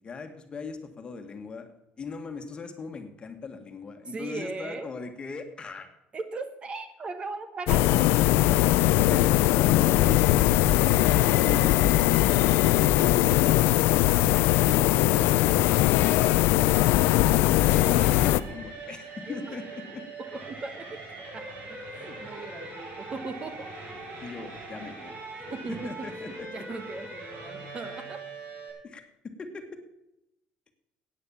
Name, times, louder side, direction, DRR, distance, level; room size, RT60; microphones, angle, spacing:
voice 1, 0.0-1.7 2.0-5.9 9.1-12.0 14.3-15.7 16.1-16.4 17.0-20.0 24.2-25.2 25.8-26.6 28.8-29.8, left 4 dB, 25° left, 6 dB, 1.5 m, -39 dB
voice 2, 4.1-4.9 6.1-8.3 19.3-19.6 20.2-21.0 21.3-23.7 25.5-28.2, right 3 dB, 30° right, 10 dB, 1.0 m, -38 dB
sound 1, 7.7-18.4, left 15 dB, 80° left, 0.5 m, -21 dB
sound 2, 17.6-28.7, right 2 dB, 65° right, 5.8 m, -41 dB
14.5 x 9.0 x 7.0 m, 0.87 s
cardioid pair, 135°, 4 cm